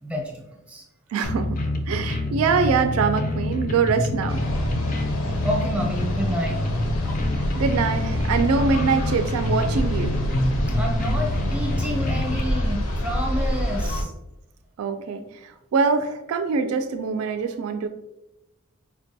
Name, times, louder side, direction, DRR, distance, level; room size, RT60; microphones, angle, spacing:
voice 1, 0.0-0.4 0.7-0.8 5.4-6.7 10.7-14.1, equal, 5° right, -1 dB, 0.6 m, -29 dB
voice 2, 1.1-1.6 1.9-4.4 7.6-10.2 14.8-17.9, right 5 dB, 85° right, 8 dB, 0.3 m, -24 dB
sound 1, 1.2-12.4, left 1 dB, 40° left, 0.3 m, -26 dB
sound 2, 4.3-14.0, equal, 85° left, 0.7 m, -28 dB
4.5 x 2.2 x 2.6 m, 0.90 s
head